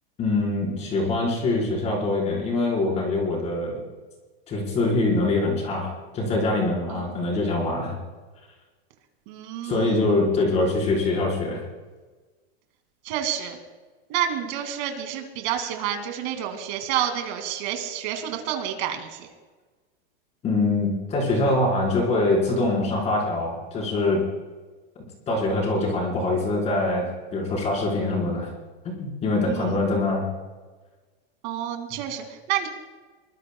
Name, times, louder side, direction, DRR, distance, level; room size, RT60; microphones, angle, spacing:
voice 1, 0.2-3.8 4.5-8.0 9.6-11.6 20.4-24.2 25.3-28.5 28.8-30.3, left 2 dB, 20° left, -2 dB, 4.5 m, -24 dB
voice 2, 9.3-9.9 13.0-13.6 14.1-19.3 29.5-29.8 31.4-32.7, right 10 dB, 45° right, 5 dB, 2.4 m, -29 dB
23.5 x 20.0 x 2.3 m, 1.3 s
supercardioid pair, 165°, 31 cm